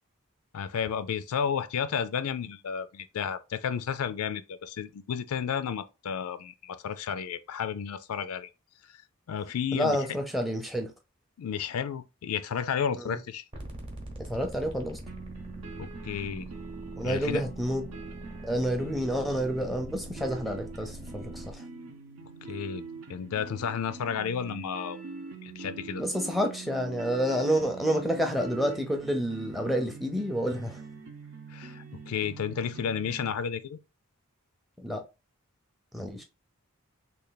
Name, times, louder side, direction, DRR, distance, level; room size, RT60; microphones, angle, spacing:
voice 1, 0.5-8.5 9.3-10.0 11.4-13.4 15.8-16.5 17.0-17.4 22.5-25.0 25.4-26.0 31.5-33.8, left 7 dB, 80° left, 0.4 m, -32 dB
voice 2, 9.7-10.9 13.0-13.2 14.2-15.0 17.0-17.8 18.4-21.6 26.0-30.8 34.8-35.0 35.9-36.2, equal, ahead, 0.5 m, -29 dB
sound 1, 13.5-21.5, equal, 25° right, 0.8 m, -43 dB
sound 2, 15.1-33.3, right 4 dB, 70° right, 0.7 m, -44 dB
3.3 x 2.3 x 3.9 m
head